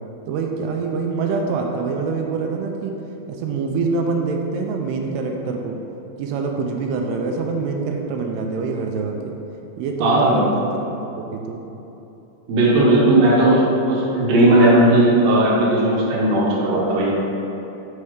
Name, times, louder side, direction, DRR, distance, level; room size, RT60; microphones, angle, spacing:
voice 1, 0.3-2.9 3.3-5.8 6.2-9.3 9.8-10.7 11.0-11.6, right 4 dB, 85° right, 2 dB, 2.6 m, -25 dB
voice 2, 10.0-10.4 12.5-13.6 13.9-17.1, right 1 dB, 60° right, -6 dB, 2.0 m, -16 dB
5.8 x 5.3 x 4.9 m, 3.0 s
omnidirectional pair, 4.6 m